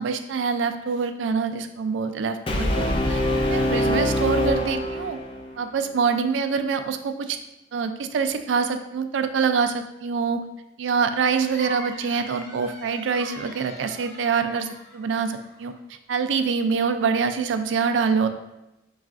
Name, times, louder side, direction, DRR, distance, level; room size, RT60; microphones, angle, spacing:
voice 1, 0.0-5.2 5.6-7.4 7.7-10.4 10.8-15.7 16.1-18.3, right 5 dB, 90° right, 8 dB, 0.3 m, -25 dB
Brass instrument, 2.5-5.6, left 1 dB, 30° left, 0.4 m, -24 dB
sound 1, 11.4-15.7, left 1 dB, 55° left, 0.9 m, -42 dB
6.3 x 2.3 x 2.4 m, 0.91 s
head